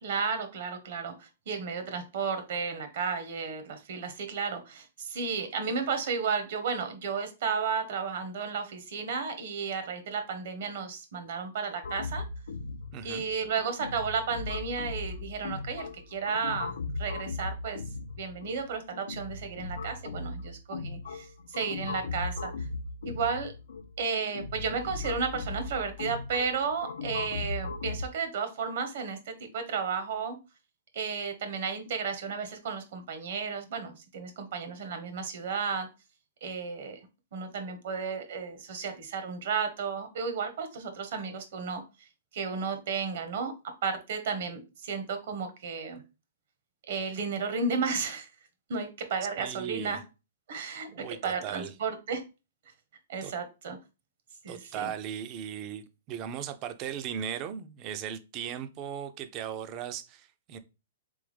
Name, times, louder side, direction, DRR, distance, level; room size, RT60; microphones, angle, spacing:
voice 1, 0.0-12.2 13.0-17.8 18.2-22.5 23.0-23.5 24.0-30.4 30.9-35.9 36.4-37.0 37.3-41.8 42.3-43.5 43.8-46.0 46.9-48.3 48.7-50.0 50.5-52.2 53.1-53.8 54.4-54.9, right 5 dB, 60° right, 1.2 m, -33 dB
sound 1, 11.8-28.1, left 3 dB, 80° left, 0.4 m, -38 dB
voice 2, 12.9-13.3 49.4-50.0 50.9-51.8 53.2-53.3 54.5-60.6, right 9 dB, 30° right, 0.5 m, -37 dB
3.5 x 3.5 x 3.3 m
hypercardioid pair, 140°, 0 cm